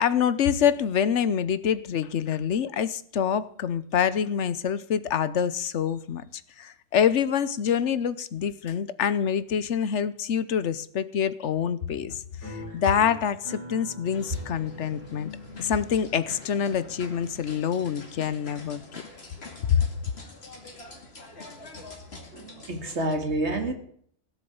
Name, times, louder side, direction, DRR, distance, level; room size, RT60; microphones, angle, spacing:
voice 1, 0.0-6.2 6.6-15.3 15.6-18.8 19.7-19.8, left 8 dB, 85° left, 1.2 m, -26 dB
sound 1, 12.4-17.4, equal, 50° right, 8.1 m, -44 dB
sound 2, 14.1-23.1, left 3 dB, 65° left, 2.5 m, -45 dB
voice 2, 22.3-23.7, right 2 dB, 75° right, 2.4 m, -28 dB
17.0 x 7.4 x 8.0 m
omnidirectional pair, 1.2 m